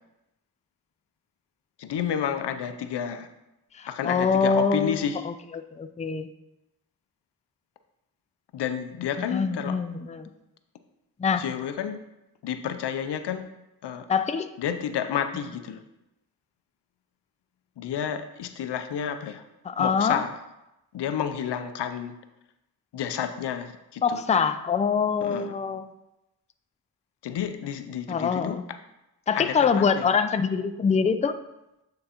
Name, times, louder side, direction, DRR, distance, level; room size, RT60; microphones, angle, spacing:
voice 1, 1.8-3.3 3.9-5.3 8.5-9.8 11.4-12.0 12.4-13.5 13.8-14.1 14.6-15.8 17.8-19.4 19.8-20.4 20.9-22.2 22.9-24.2 25.2-25.5 27.2-28.6 29.4-30.1, left 8 dB, 85° left, 9 dB, 0.5 m, -30 dB
voice 2, 3.8-6.3 9.3-10.3 11.2-11.4 14.1-14.5 19.6-20.2 24.0-25.9 28.1-28.6 29.3-31.3, left 5 dB, 20° left, 10 dB, 0.4 m, -24 dB
8.8 x 3.8 x 2.9 m, 0.92 s
cardioid pair, 45°, 40 cm